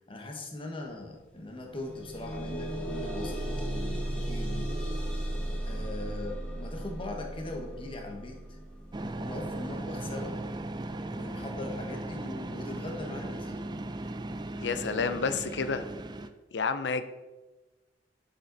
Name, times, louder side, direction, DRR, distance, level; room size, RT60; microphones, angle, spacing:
voice 1, 0.1-4.7 5.6-8.6 9.1-10.4 11.1-13.6, left 2 dB, 30° left, 2 dB, 1.4 m, -40 dB
sound 1, 0.9-1.0 1.4-12.4 13.2-13.3 13.8-13.9, right 1 dB, 5° left, 1.6 m, -36 dB
sound 2, 8.9-16.3, right 2 dB, 25° right, 0.4 m, -37 dB
voice 2, 14.6-15.9 16.5-17.0, left 5 dB, 80° left, 11 dB, 0.6 m, -29 dB
7.5 x 6.8 x 4.1 m, 1.1 s
head